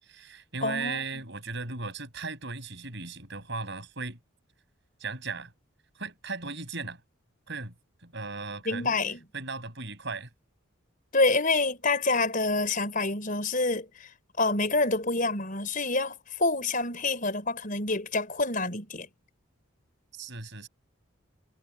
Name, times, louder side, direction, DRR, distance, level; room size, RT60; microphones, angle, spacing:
voice 1, 0.0-4.2 5.0-5.5 5.9-7.0 7.5-7.7 8.0-8.9 9.3-10.3 20.1-20.7, right 4 dB, 55° right, 7.5 m, -37 dB
voice 2, 0.6-1.0 8.6-9.2 11.1-14.1 14.4-19.1, left 3 dB, 40° left, 5.1 m, -27 dB
head